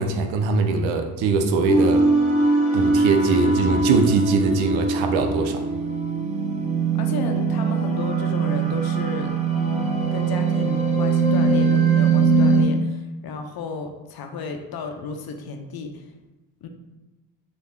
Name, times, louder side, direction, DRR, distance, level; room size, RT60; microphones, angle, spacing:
voice 1, 0.0-2.1 2.7-5.6, right 4 dB, 75° right, 6 dB, 0.6 m, -22 dB
sound 1, 1.7-12.6, right 4 dB, 15° right, 1.1 m, -21 dB
voice 2, 7.0-16.0 16.6-16.7, left 4 dB, 50° left, 5 dB, 0.6 m, -33 dB
3.3 x 2.1 x 3.5 m, 1.0 s
supercardioid pair, 65°, 47 cm